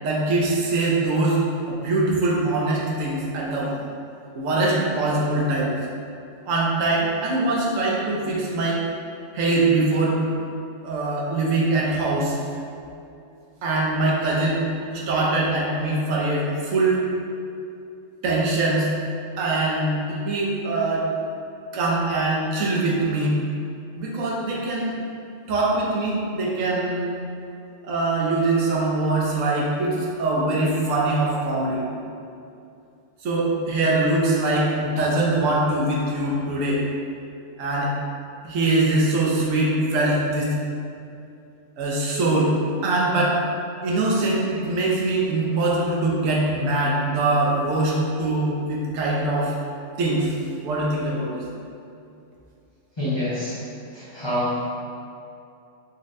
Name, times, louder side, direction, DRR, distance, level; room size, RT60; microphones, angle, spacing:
voice 1, 0.0-1.4 1.7-3.8 4.3-5.7 6.5-8.8 9.3-10.2 10.8-12.4 13.6-14.6 14.9-17.0 18.2-18.9 19.4-21.1 21.7-23.3 24.0-24.9 25.5-27.2 27.8-31.8 33.2-36.8 37.6-37.9 38.4-40.5 41.8-42.5 42.8-43.4 43.8-49.5 50.0-50.3 50.6-51.4, right 2 dB, 85° right, -4 dB, 1.0 m, -22 dB
voice 2, 53.0-53.6 53.9-54.6, left 1 dB, 30° left, -12 dB, 0.6 m, -26 dB
4.2 x 2.1 x 2.5 m, 2.6 s
omnidirectional pair, 1.3 m